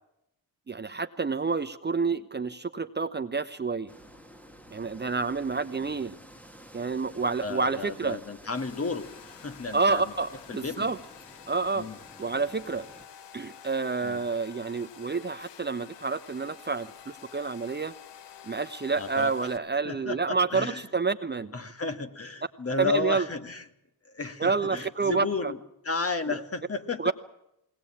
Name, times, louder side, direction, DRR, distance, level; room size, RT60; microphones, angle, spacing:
voice 1, 0.7-3.9 4.7-6.2 6.7-8.2 9.7-11.0 11.5-11.9 12.2-12.9 13.3-17.9 18.4-21.5 22.8-23.3 24.4-25.5 26.3-26.4 27.0-27.1, right 4 dB, 25° right, 9 dB, 0.9 m, -29 dB
sound 1, 3.9-13.1, equal, 5° left, 1.6 m, -51 dB
voice 2, 7.4-10.1 10.5-11.0 11.7-12.0 14.0-14.2 19.0-19.3 19.8-20.8 21.5-23.6 24.1-25.6 25.8-27.1, left 3 dB, 35° left, 8 dB, 1.8 m, -33 dB
Domestic sounds home sounds, 8.5-19.6, left 9 dB, 75° left, 1.1 m, -49 dB
20.5 x 18.5 x 8.7 m, 0.83 s
supercardioid pair, 65°, 43 cm